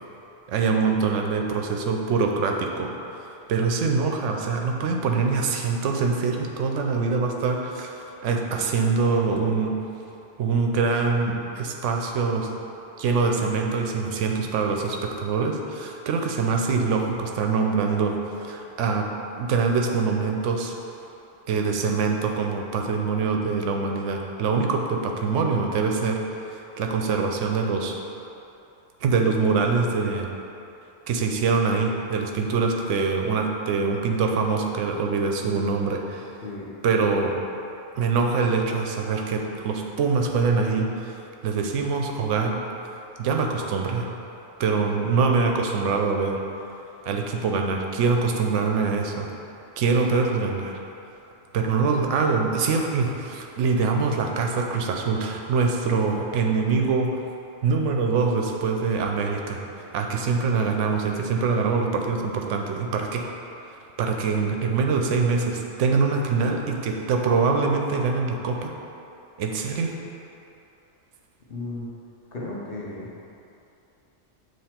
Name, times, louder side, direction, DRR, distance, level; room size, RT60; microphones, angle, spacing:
voice 1, 0.5-2.9 3.5-7.9 8.2-9.7 10.4-12.5 13.0-19.1 19.4-20.7 21.5-26.2 26.5-27.9 29.0-30.3 31.1-36.3 36.8-37.4 38.0-41.1 41.4-42.6 43.2-44.1 44.6-46.4 47.1-49.3 49.8-50.8 51.5-57.1 57.6-59.6 59.9-63.3 64.0-68.7 69.4-69.9, right 4 dB, 80° right, 2 dB, 0.9 m, -24 dB
voice 2, 71.5-71.9 72.3-73.1, left 2 dB, 55° left, -4 dB, 0.9 m, -34 dB
7.6 x 3.0 x 4.3 m, 2.8 s
omnidirectional pair, 1.3 m